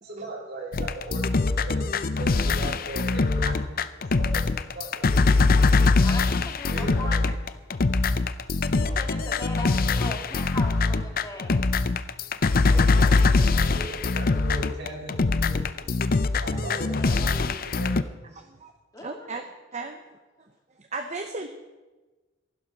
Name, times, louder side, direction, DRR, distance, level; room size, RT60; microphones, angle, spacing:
voice 1, 0.0-3.8 4.1-4.5 4.7-5.9 6.7-7.2 8.8-9.1 12.6-15.8 16.4-18.2, right 2 dB, 55° right, -1 dB, 3.4 m, -38 dB
sound 1, 0.7-18.0, left 3 dB, 45° left, 0.6 m, -23 dB
voice 2, 6.0-7.3 8.7-11.7 17.0-17.4 18.9-19.4, left 1 dB, 20° left, 1 dB, 2.0 m, -39 dB
voice 3, 8.3-8.7 12.2-12.6 15.8-15.9 16.4-16.7 18.3-18.7 19.0-19.4 19.7-20.0 20.4-21.5, right 3 dB, 35° right, 5 dB, 0.9 m, -38 dB
15.0 x 11.5 x 6.2 m, 1.2 s
head